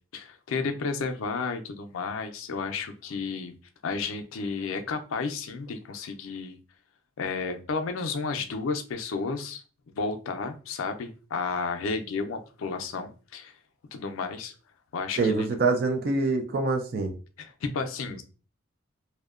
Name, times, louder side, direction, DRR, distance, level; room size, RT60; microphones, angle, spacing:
voice 1, 0.1-3.5 3.8-6.6 7.2-13.5 13.9-14.5 14.9-15.5 17.4-18.2, left 4 dB, 85° left, 7 dB, 0.4 m, -32 dB
voice 2, 15.2-17.1, right 3 dB, 45° right, 5 dB, 0.4 m, -25 dB
2.6 x 2.1 x 2.3 m, 0.36 s
head